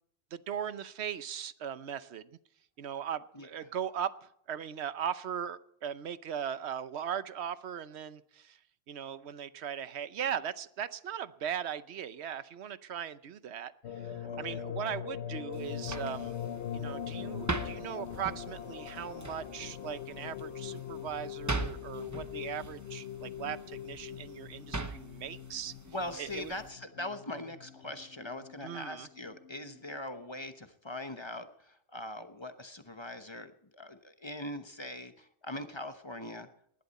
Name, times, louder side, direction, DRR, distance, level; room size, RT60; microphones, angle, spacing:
voice 1, 0.3-2.3 2.8-8.6 8.9-16.3 16.7-25.7 26.2-26.5 28.6-29.1, right 8 dB, 85° right, 14 dB, 1.0 m, -38 dB
sound 1, 13.8-30.0 30.4-30.5, left 9 dB, 85° left, 1.1 m, -42 dB
voice 2, 14.2-14.6 25.9-36.5, left 1 dB, 25° left, 9 dB, 1.0 m, -41 dB
sound 2, 15.5-26.7, right 2 dB, 20° right, 0.8 m, -42 dB
19.0 x 11.5 x 4.2 m, 0.69 s
omnidirectional pair, 1.1 m